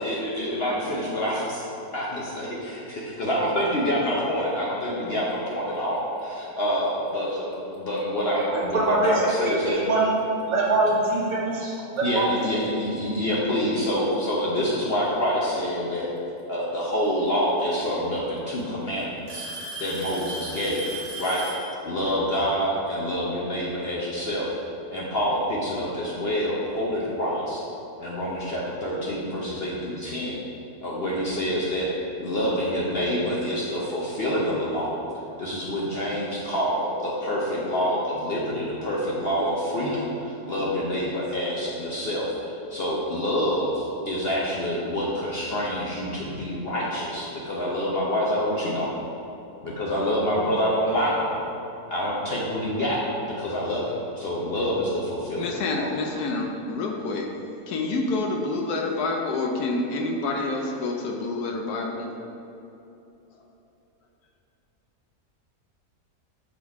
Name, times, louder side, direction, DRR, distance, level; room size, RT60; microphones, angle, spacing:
voice 1, 0.0-1.6 1.9-9.8 11.6-11.7 12.0-16.1 16.5-19.5 19.8-20.9 21.2-21.4 21.8-24.5 24.9-27.6 28.0-30.4 30.8-31.9 32.2-35.0 35.4-49.0 49.6-51.4 51.9-53.9 54.2-55.9, equal, 50° left, -5 dB, 0.8 m, -27 dB
Alarm / Tick-tock, 7.7-8.0 8.9-9.0 9.7-9.8 11.5-11.6 12.8-12.9 14.2-14.6 16.4-16.5 17.7-17.8 18.2-18.6 19.3-21.7, right 2 dB, 30° right, 1.0 m, -36 dB
voice 2, 8.3-10.1 10.5-11.6 12.0-12.3, right 2 dB, 60° right, -4 dB, 1.4 m, -24 dB
voice 3, 55.4-57.3 57.7-62.1, left 3 dB, 75° left, 2 dB, 1.1 m, -28 dB
6.2 x 3.7 x 4.7 m, 2.9 s
omnidirectional pair, 1.7 m